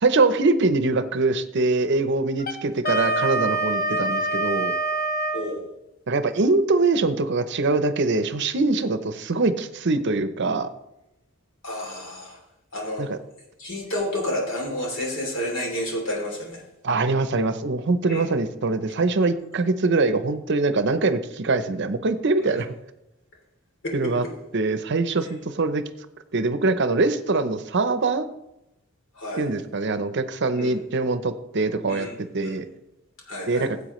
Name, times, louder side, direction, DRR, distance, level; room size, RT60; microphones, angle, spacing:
voice 1, 0.0-4.7 6.1-10.7 13.0-13.2 16.8-22.7 23.9-24.2 24.5-25.9 26.3-28.3 29.4-32.7 33.5-33.7, right 3 dB, 55° right, 11 dB, 0.7 m, -23 dB
Wind instrument woodwind instrument, 2.4-5.5, right 2 dB, 45° left, 1.0 m, -25 dB
voice 2, 11.6-12.4 12.7-13.0 13.6-16.6 18.1-18.3 22.4-22.6 23.8-24.1 29.1-29.4 30.5-30.8 31.9-32.6 33.3-33.7, left 1 dB, 60° left, 0 dB, 3.1 m, -30 dB
15.0 x 8.1 x 3.1 m, 0.87 s
head